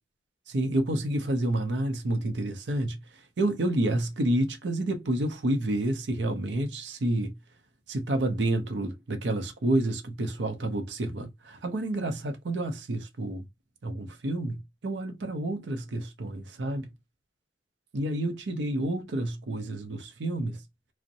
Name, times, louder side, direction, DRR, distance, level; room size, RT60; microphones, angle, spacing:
voice 1, 0.5-3.0 3.4-7.3 7.9-13.5 13.8-16.9 17.9-20.6, right 1 dB, 75° right, 0.6 m, -29 dB
2.5 x 2.1 x 2.6 m
head